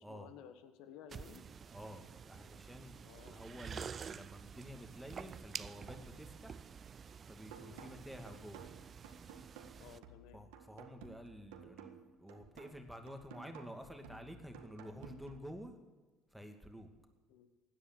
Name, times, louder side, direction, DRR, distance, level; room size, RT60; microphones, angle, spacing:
voice 1, 0.0-1.4 3.0-3.6 7.6-7.9 9.7-10.4 17.3-17.5, left 9 dB, 80° left, 10 dB, 1.6 m, -56 dB
sound 1, 1.1-10.0, right 6 dB, 40° right, 0.6 m, -49 dB
voice 2, 1.7-6.6 7.3-8.7 10.3-15.7 16.3-16.9, equal, ahead, 5 dB, 2.5 m, -50 dB
sound 2, 7.5-15.5, right 6 dB, 85° right, 1.7 m, -55 dB
16.5 x 10.0 x 8.0 m, 1.3 s
supercardioid pair, 85°, 0 cm